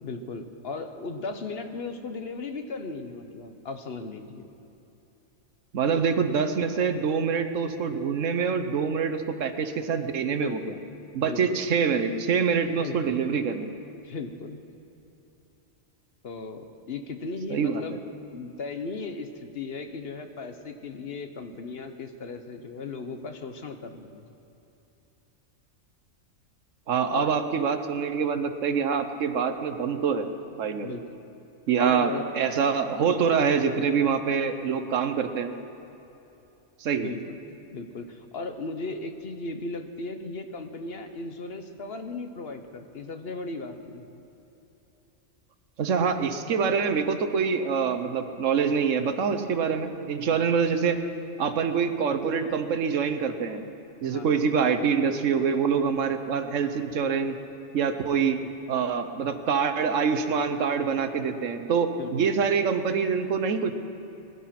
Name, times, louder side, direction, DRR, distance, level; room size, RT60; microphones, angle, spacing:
voice 1, 0.0-4.5 10.3-10.8 11.2-11.6 12.8-13.2 14.0-14.6 16.2-18.0 18.3-24.3 27.1-27.4 30.8-31.0 31.8-32.3 37.0-37.4 37.7-44.1 50.2-50.5 54.0-54.4 58.2-58.5 60.3-60.4 62.0-62.3, left 3 dB, 55° left, 6 dB, 1.1 m, -36 dB
voice 2, 5.7-10.7 11.1-13.7 17.5-17.8 26.9-30.3 30.6-30.9 31.7-35.5 36.8-37.1 45.8-51.0 51.4-53.6 54.0-57.4 57.7-58.4 58.7-63.7, right 6 dB, 75° right, 9 dB, 1.2 m, -25 dB
20.5 x 11.5 x 5.9 m, 3.0 s
omnidirectional pair, 1.3 m